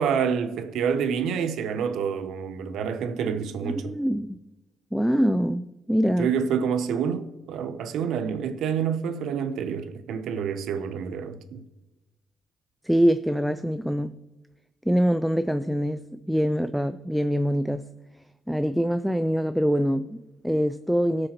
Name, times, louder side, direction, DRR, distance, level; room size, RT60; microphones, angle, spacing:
voice 1, 0.0-4.0 6.2-11.6, right 7 dB, 80° right, 0.8 m, -28 dB
voice 2, 3.6-4.4 4.9-6.3 12.8-14.2 14.9-17.9 18.5-21.3, equal, ahead, 0.3 m, -24 dB
18.5 x 6.5 x 3.0 m
cardioid pair, 90°, 0 cm